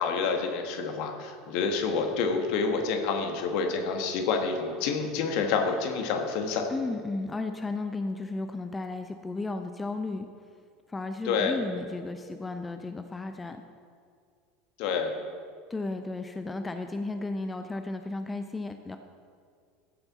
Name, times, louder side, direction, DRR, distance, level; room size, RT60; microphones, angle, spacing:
voice 1, 0.0-6.7 11.2-11.6 14.8-15.1, left 5 dB, 55° left, 4 dB, 1.4 m, -28 dB
voice 2, 6.7-10.3 10.9-13.6 15.7-19.0, left 3 dB, 15° left, 7 dB, 0.6 m, -34 dB
14.5 x 8.0 x 4.1 m, 2.2 s
figure-of-eight pair, 75°, 0 cm